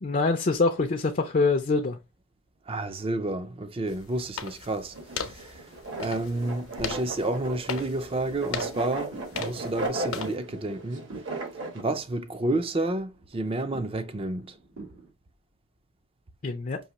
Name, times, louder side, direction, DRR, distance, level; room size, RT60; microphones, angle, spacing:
voice 1, 0.0-2.0 16.4-16.8, left 3 dB, 40° left, 0.4 m, -24 dB
voice 2, 2.7-5.7 6.0-11.0 11.7-14.6, right 2 dB, 25° right, 0.4 m, -30 dB
sound 1, 3.9-10.4, left 5 dB, 70° left, 0.8 m, -39 dB
sound 2, 4.9-11.8, right 2 dB, 55° right, 1.2 m, -36 dB
sound 3, 10.7-15.1, right 2 dB, 90° right, 2.6 m, -50 dB
5.5 x 2.8 x 2.9 m
head